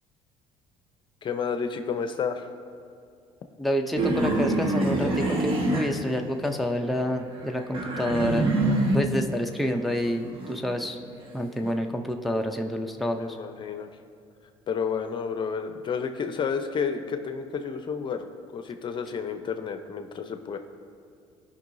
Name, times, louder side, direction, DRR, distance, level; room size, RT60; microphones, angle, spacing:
voice 1, 1.2-2.5 13.2-13.9 14.7-18.3 18.5-20.6, left 6 dB, 45° left, 7 dB, 0.7 m, -31 dB
voice 2, 3.6-8.5 8.9-11.0 11.3-13.4, equal, ahead, 3 dB, 0.6 m, -28 dB
sound 1, 4.0-6.6 7.0-9.2 9.7-11.7, right 2 dB, 50° right, 1.5 m, -26 dB
16.0 x 5.5 x 2.7 m, 2.4 s
supercardioid pair, 90°, 12 cm